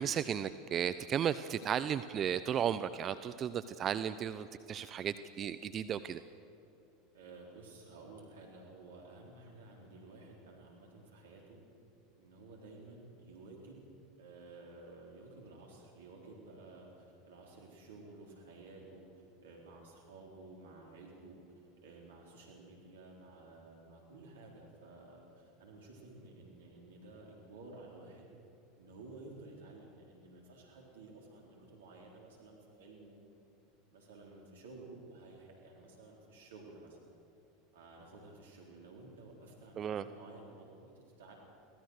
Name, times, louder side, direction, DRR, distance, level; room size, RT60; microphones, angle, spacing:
voice 1, 0.0-6.2 39.8-40.0, right 9 dB, 40° right, 13 dB, 0.7 m, -34 dB
voice 2, 7.1-11.6 12.2-13.8 14.2-21.4 21.8-28.3 28.8-33.2 33.9-37.0 37.7-41.3, right 2 dB, 75° right, -1 dB, 4.0 m, -53 dB
25.5 x 17.5 x 6.5 m, 2.9 s
hypercardioid pair, 85°, 0 cm